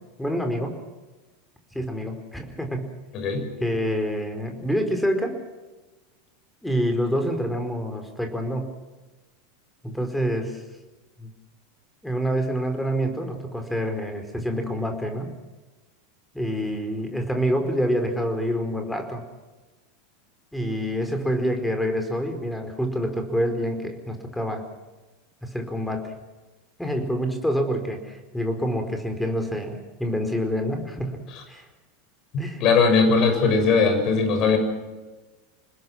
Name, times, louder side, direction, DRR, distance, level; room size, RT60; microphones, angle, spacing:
voice 1, 0.2-0.8 1.7-2.9 3.6-5.4 6.6-8.8 9.8-10.6 11.2-11.3 12.0-15.3 16.3-19.2 20.5-24.6 25.4-26.1 26.8-31.2 31.5-31.7 32.4-32.6, equal, 5° left, 5 dB, 4.7 m, -27 dB
voice 2, 3.1-3.5 32.6-34.6, left 4 dB, 45° left, 6 dB, 6.4 m, -19 dB
27.0 x 20.5 x 6.2 m, 1.2 s
figure-of-eight pair, 85°, 0 cm